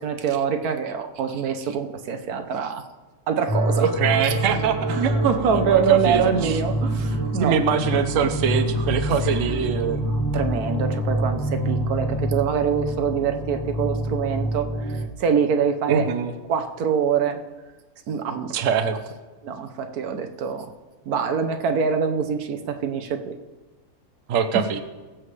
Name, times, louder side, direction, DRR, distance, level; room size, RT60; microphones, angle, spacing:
voice 1, 0.0-2.8 3.3-3.9 4.9-7.6 10.3-16.1 16.5-17.4 18.1-18.5 19.4-20.7 21.1-23.4 24.5-24.6, right 7 dB, 85° right, 6 dB, 1.4 m, -24 dB
sound 1, 3.5-15.1, right 1 dB, 15° left, 1.1 m, -26 dB
voice 2, 3.8-5.2 5.5-6.6 7.3-10.0 15.9-16.3 18.5-19.0 24.3-24.8, right 7 dB, 65° right, 8 dB, 1.1 m, -23 dB
22.0 x 7.5 x 3.3 m, 1.2 s
omnidirectional pair, 1.5 m